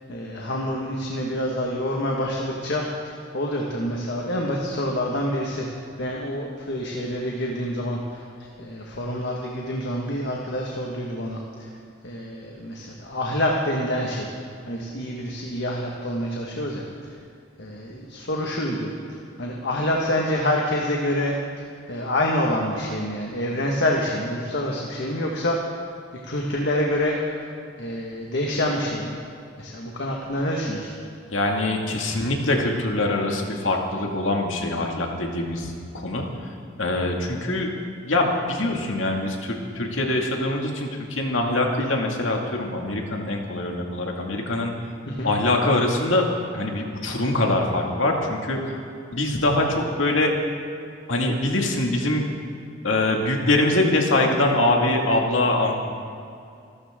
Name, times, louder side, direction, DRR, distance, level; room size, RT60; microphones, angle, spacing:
voice 1, 0.1-5.7 6.0-8.2 8.6-11.7 12.0-14.3 14.7-16.8 17.6-18.9 19.4-21.3 21.9-25.6 26.3-27.2 27.8-29.1 29.6-30.9 45.1-45.4, left 1 dB, 60° left, -1 dB, 1.7 m, -27 dB
voice 2, 31.3-36.3 36.8-37.7 38.0-44.7 45.2-46.3 46.5-48.6 49.1-50.3 51.1-52.2 52.8-55.7, left 2 dB, 75° left, 1 dB, 2.3 m, -23 dB
27.0 x 13.0 x 3.8 m, 2.5 s
head